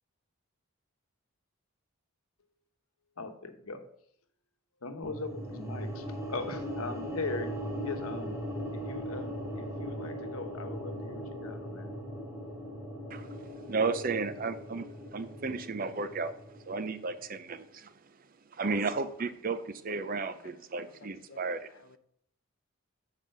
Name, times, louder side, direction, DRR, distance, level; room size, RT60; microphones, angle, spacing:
voice 1, 3.2-3.8 4.8-7.5 7.8-8.4 8.7-11.9, left 3 dB, 85° left, 7 dB, 1.0 m, -40 dB
sound 1, 5.0-17.3, equal, 15° right, 1.5 m, -39 dB
voice 2, 13.1-14.9 15.1-17.9 18.5-21.7, right 4 dB, 40° right, 11 dB, 0.5 m, -34 dB
voice 3, 20.2-21.5 21.7-22.0, left 4 dB, 60° left, 11 dB, 0.7 m, -55 dB
7.6 x 4.9 x 5.3 m, 0.67 s
head